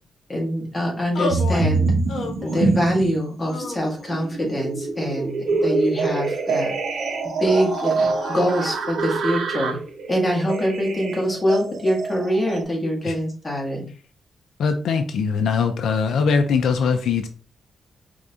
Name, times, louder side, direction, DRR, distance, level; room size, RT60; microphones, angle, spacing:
voice 1, 0.3-1.9 2.4-6.7 7.4-9.8 10.1-13.9, equal, 15° left, -2 dB, 1.6 m, -24 dB
sound 1, 1.1-1.7 2.1-2.8 3.4-4.3 5.1-6.1 7.4-8.8, left 3 dB, 60° left, 1.1 m, -33 dB
sound 2, 1.3-3.2 3.6-12.6, right 3 dB, 80° right, 0.9 m, -25 dB
voice 2, 14.6-17.3, left 5 dB, 85° left, 7 dB, 0.5 m, -21 dB
4.9 x 3.5 x 2.7 m, 0.39 s
wide cardioid pair, 150°, 0 cm